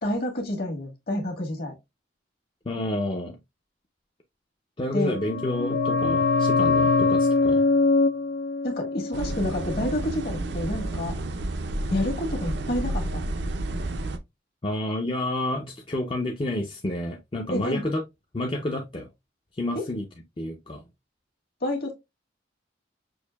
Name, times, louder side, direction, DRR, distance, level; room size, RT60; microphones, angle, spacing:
voice 1, 0.0-1.8 4.9-5.2 8.6-11.2 11.9-13.2 17.5-17.9 19.7-19.8 21.6-21.9, left 1 dB, 55° left, 1.4 m, -29 dB
voice 2, 2.7-3.4 4.8-7.6 14.6-18.0 18.3-19.1 19.5-20.1 20.4-20.8, left 1 dB, 30° left, 0.5 m, -29 dB
sound 1, 5.0-10.4 10.7-10.8, left 3 dB, 90° left, 0.4 m, -23 dB
sound 2, 9.1-14.2, right 2 dB, 70° right, 0.5 m, -30 dB
6.3 x 2.6 x 2.2 m
head